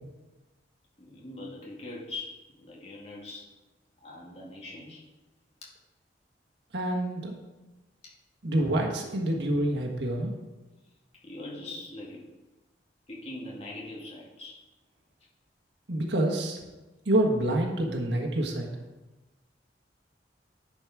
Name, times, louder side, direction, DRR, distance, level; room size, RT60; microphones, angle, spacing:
voice 1, 1.0-3.5 4.0-5.0 11.2-12.2 13.1-14.6, left 2 dB, 35° left, -4 dB, 2.2 m, -42 dB
voice 2, 6.7-7.3 8.4-10.3 15.9-16.6 17.0-18.7, right 1 dB, 80° right, 0 dB, 1.5 m, -27 dB
10.5 x 5.2 x 4.9 m, 1.1 s
head